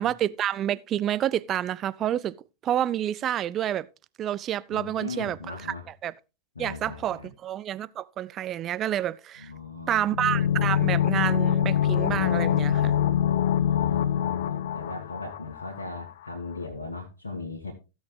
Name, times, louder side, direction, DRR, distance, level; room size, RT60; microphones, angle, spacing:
voice 1, 0.0-2.3 2.6-3.9 4.2-5.6 6.0-6.1 6.6-9.5 9.9-12.9, right 11 dB, 30° right, 0.4 m, -28 dB
voice 2, 4.7-5.9 6.6-7.3 9.4-10.0 13.0-17.7, left 3 dB, 75° left, 1.9 m, -38 dB
sound 1, 10.1-15.8 16.1-16.2, left 10 dB, 60° left, 0.5 m, -24 dB
16.0 x 6.4 x 3.3 m
figure-of-eight pair, 95°, 0 cm